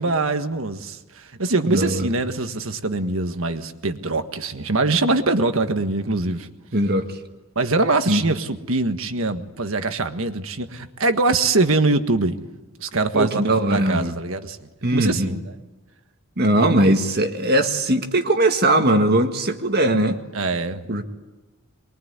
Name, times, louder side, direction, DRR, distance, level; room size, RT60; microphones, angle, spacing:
voice 1, 0.0-6.5 7.6-12.4 12.8-15.5 20.3-20.9, right 3 dB, 65° right, 1.6 m, -23 dB
voice 2, 1.7-2.1 6.7-7.1 8.1-8.2 13.1-14.1 14.8-15.4 16.4-20.2 20.9-21.0, right 1 dB, 45° right, 1.8 m, -20 dB
24.5 x 22.0 x 9.7 m
head